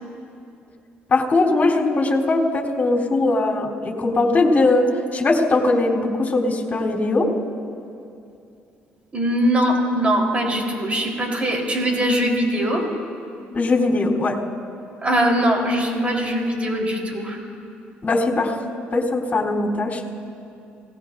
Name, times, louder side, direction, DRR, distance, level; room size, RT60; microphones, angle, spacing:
voice 1, 1.1-4.9 5.1-7.3 13.5-14.4 18.0-18.5 18.9-20.1, left 2 dB, 35° left, -2 dB, 3.6 m, -20 dB
voice 2, 9.1-12.9 15.0-17.4, equal, 30° right, 0 dB, 4.0 m, -21 dB
27.0 x 18.5 x 2.7 m, 2.6 s
supercardioid pair, 75°, 4 cm